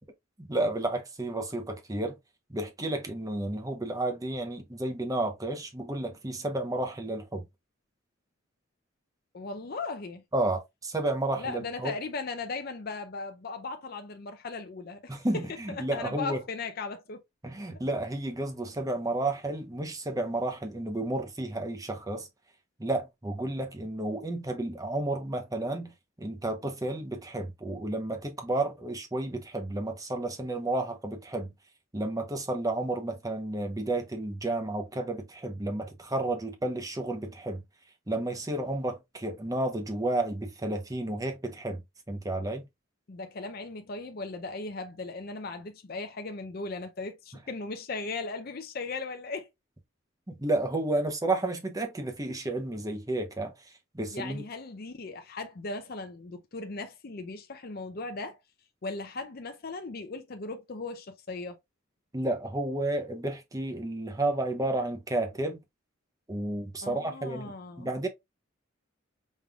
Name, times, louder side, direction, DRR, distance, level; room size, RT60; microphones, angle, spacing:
voice 1, 0.4-2.2 2.5-7.4 10.3-11.9 15.1-16.4 17.4-22.3 22.8-31.5 31.9-37.6 38.1-41.8 42.1-42.7 50.3-54.4 62.1-65.6 66.3-68.1, right 2 dB, 15° right, 0.8 m, -31 dB
voice 2, 9.3-10.2 11.3-15.2 15.7-17.2 43.1-49.5 54.1-58.4 58.8-61.6 66.8-67.9, left 3 dB, 45° left, 0.5 m, -37 dB
5.3 x 3.2 x 2.3 m
head